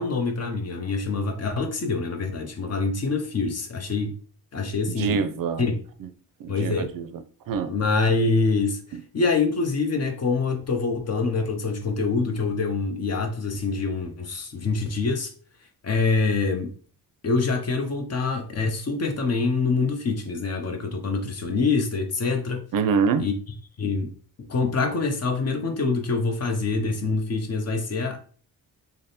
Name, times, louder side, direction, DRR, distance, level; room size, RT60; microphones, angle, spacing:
voice 1, 0.0-4.1 4.5-5.2 5.6-5.8 6.5-6.9 7.7-15.3 15.8-16.7 17.2-22.6 23.2-23.3 23.8-24.1 24.5-28.2, left 4 dB, 40° left, 0.8 m, -25 dB
voice 2, 4.9-5.7 6.0-6.1 6.4-7.7 8.9-9.0 22.7-23.3, right 6 dB, 65° right, 0.5 m, -26 dB
3.4 x 2.1 x 4.1 m
cardioid pair, 100°, 37 cm